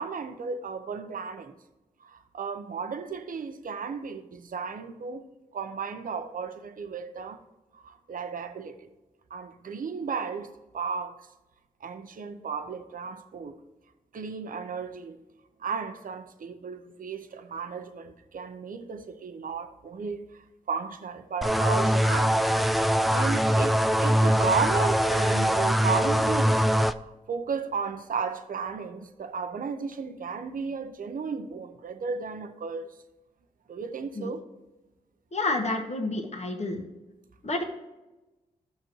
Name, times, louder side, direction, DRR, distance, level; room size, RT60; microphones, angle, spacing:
voice 1, 0.0-1.5 2.0-5.2 5.5-7.4 7.7-8.9 9.3-10.5 10.7-11.2 11.8-13.6 14.1-15.2 15.6-22.4 23.1-32.9 33.7-34.4, right 5 dB, 65° right, 0.8 m, -34 dB
sound 1, 21.4-26.9, equal, ahead, 0.5 m, -23 dB
voice 2, 35.3-36.8 37.4-37.6, left 2 dB, 45° left, 1.6 m, -29 dB
14.0 x 6.1 x 3.1 m
supercardioid pair, 45°, 15 cm